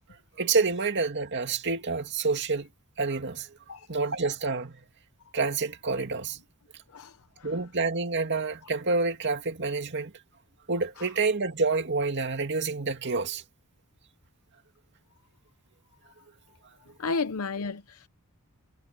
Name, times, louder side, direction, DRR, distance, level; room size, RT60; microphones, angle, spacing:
voice 1, 0.4-2.7 3.0-3.5 3.9-4.8 5.3-6.4 7.4-10.1 10.7-13.4, right 4 dB, 55° right, 2.3 m, -28 dB
voice 2, 17.0-18.1, left 4 dB, 80° left, 0.8 m, -32 dB
head